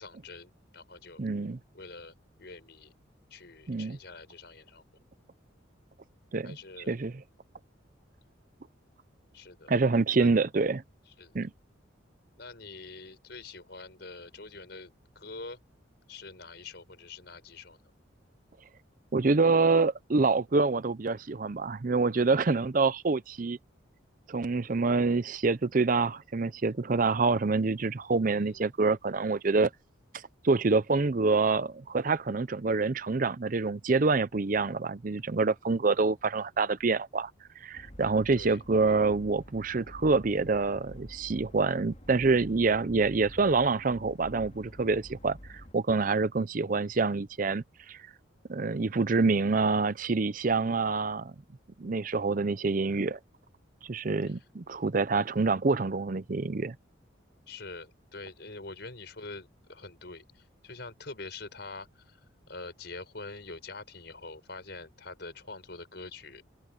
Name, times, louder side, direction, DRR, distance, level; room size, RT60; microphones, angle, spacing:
voice 1, 0.0-1.2 1.7-2.9 3.3-4.8 6.4-6.9 9.3-9.7 10.2-10.4 11.1-11.4 12.4-15.6 16.1-17.8 28.3-28.7 38.3-38.6 54.3-54.4 57.5-62.2 62.5-66.4, left 3 dB, 55° left, 6.0 m, -45 dB
voice 2, 1.2-1.6 3.7-4.0 6.3-6.6 6.9-7.1 9.7-10.8 11.3-11.5 19.1-23.6 24.3-29.7 30.4-37.3 37.6-48.0 48.5-51.3 51.8-53.2 53.8-56.7, right 3 dB, 45° right, 0.5 m, -26 dB
sound 1, 37.7-45.7, equal, 35° left, 3.3 m, -49 dB
open air
head